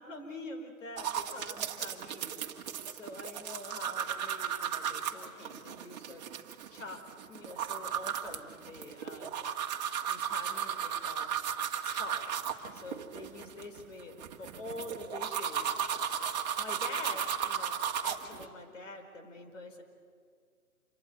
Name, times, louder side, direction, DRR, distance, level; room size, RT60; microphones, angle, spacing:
voice 1, 0.0-2.5 2.9-6.2 6.7-9.5 9.7-11.3 11.8-12.3 12.7-15.8 16.6-19.8, left 2 dB, 60° left, 6 dB, 4.8 m, -46 dB
sound 1, 1.0-18.5, right 8 dB, 30° right, 1.6 m, -35 dB
27.0 x 23.0 x 9.1 m, 2.1 s
figure-of-eight pair, 145°, 43 cm